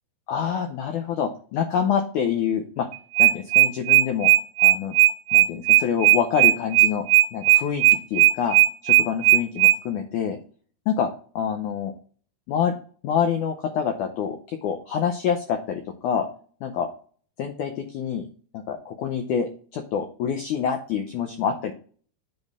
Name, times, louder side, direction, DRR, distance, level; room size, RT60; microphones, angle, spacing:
voice 1, 0.3-2.9 3.2-4.3 4.6-5.0 5.3-7.1 7.3-8.6 8.8-10.4 10.9-11.1 11.4-11.9 12.5-12.7 13.0-16.3 16.6-16.9 17.4-18.3 18.5-21.7, left 7 dB, 85° left, 5 dB, 1.7 m, -26 dB
sound 1, 2.9-9.8, right 16 dB, 80° right, 2.7 m, -16 dB
10.5 x 4.3 x 3.6 m, 0.43 s
omnidirectional pair, 4.6 m